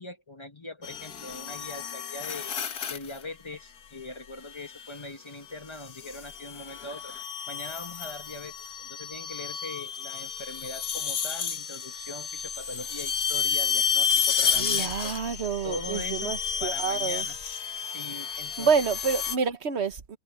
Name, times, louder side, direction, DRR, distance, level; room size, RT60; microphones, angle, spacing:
voice 1, 0.0-2.5 2.9-7.2 7.5-15.1 15.6-16.3 16.6-17.4 17.8-18.7, left 2 dB, 20° left, 1.1 m, -41 dB
sound 1, 0.8-3.2 4.6-5.0 5.8-19.4, left 7 dB, 75° left, 1.7 m, -31 dB
voice 2, 14.4-17.3 18.6-20.2, right 6 dB, 45° right, 1.2 m, -28 dB
omnidirectional pair, 1.7 m